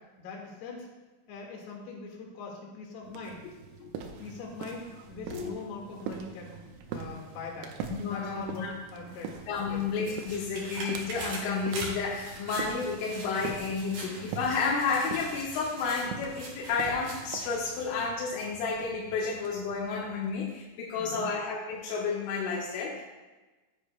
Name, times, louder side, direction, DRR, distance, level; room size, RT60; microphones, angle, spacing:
voice 1, 0.2-0.9 1.3-3.4 4.2-6.6 6.9-7.7 8.0-8.7 8.9-9.9 20.9-21.3, left 3 dB, 65° left, -1 dB, 3.4 m, -42 dB
sound 1, 3.0-20.6, right 6 dB, 85° right, 3.4 m, -44 dB
voice 2, 7.9-8.8 9.5-23.0, left 5 dB, 80° left, -3 dB, 3.4 m, -31 dB
sound 2, 9.3-18.1 18.5-18.6, right 2 dB, 50° right, 5.5 m, -43 dB
14.5 x 9.9 x 2.2 m, 1.2 s
omnidirectional pair, 5.8 m